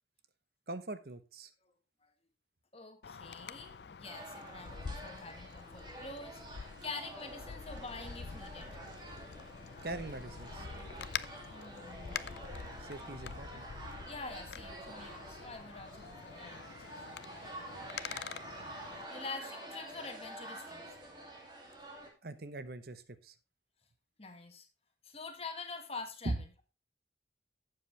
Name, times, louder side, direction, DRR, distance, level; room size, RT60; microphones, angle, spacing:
voice 1, 0.7-1.5 9.8-10.7 12.8-13.7 22.2-23.3 26.2-26.4, right 2 dB, 60° right, 0.9 m, -41 dB
voice 2, 2.7-8.7 11.5-12.2 14.1-16.9 19.1-21.0 24.2-24.7 25.0-26.3, left 3 dB, 35° left, 1.7 m, -46 dB
Wind, 3.0-19.0, left 6 dB, 70° left, 0.5 m, -46 dB
sound 1, 4.0-22.1, right 1 dB, 25° right, 2.5 m, -48 dB
12.0 x 7.8 x 3.3 m
head